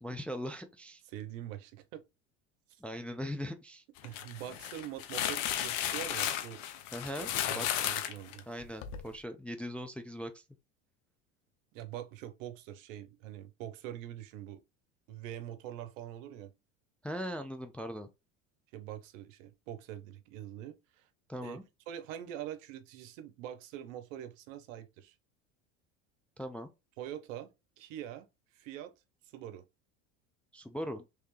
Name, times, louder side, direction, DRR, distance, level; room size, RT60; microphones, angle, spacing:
voice 1, 0.0-1.0 2.8-3.8 6.9-7.8 8.5-10.4 17.0-18.1 21.3-21.6 26.4-26.7 30.5-31.0, equal, 5° left, 0.4 m, -40 dB
voice 2, 1.0-2.0 2.7-2.8 4.0-6.6 7.4-8.4 11.7-14.6 15.1-16.5 18.7-21.1 21.4-21.6 21.9-25.1 27.0-27.5 27.8-28.3 28.5-28.9 29.3-29.6, right 11 dB, 70° right, 0.8 m, -44 dB
sound 1, 4.0-9.1, left 11 dB, 60° left, 0.8 m, -34 dB
3.4 x 3.2 x 3.1 m
hypercardioid pair, 85°, 40 cm